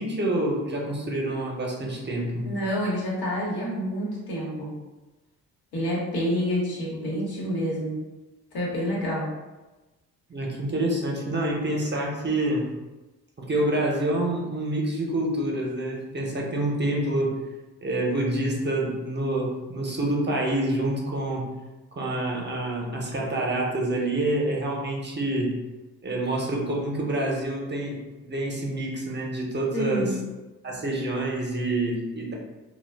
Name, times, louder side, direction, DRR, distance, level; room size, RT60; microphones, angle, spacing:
voice 1, 0.0-2.5 10.3-12.7 13.4-17.4 17.8-21.4 22.0-25.6 26.0-28.0 28.2-30.1 30.6-32.3, right 1 dB, 30° right, -2 dB, 0.7 m, -27 dB
voice 2, 2.4-4.8 5.7-8.0 8.5-9.3 29.7-30.3, equal, 80° left, -5 dB, 1.1 m, -28 dB
2.2 x 2.2 x 3.3 m, 1.1 s
supercardioid pair, 65°, 37 cm